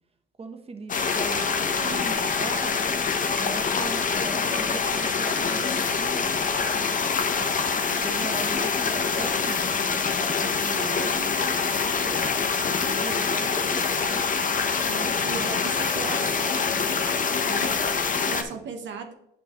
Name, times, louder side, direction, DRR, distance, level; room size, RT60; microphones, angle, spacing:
voice 1, 0.4-3.0 3.4-6.4 7.9-9.8 10.1-12.2 12.6-14.3 14.9-16.3 18.2-18.6, right 3 dB, 30° right, 7 dB, 1.1 m, -39 dB
sound 1, 0.9-18.4, left 5 dB, 40° left, 0.9 m, -25 dB
voice 2, 14.9-19.1, right 6 dB, 65° right, 5 dB, 1.0 m, -39 dB
9.2 x 5.3 x 3.0 m, 0.78 s
cardioid pair, 90°, 20 cm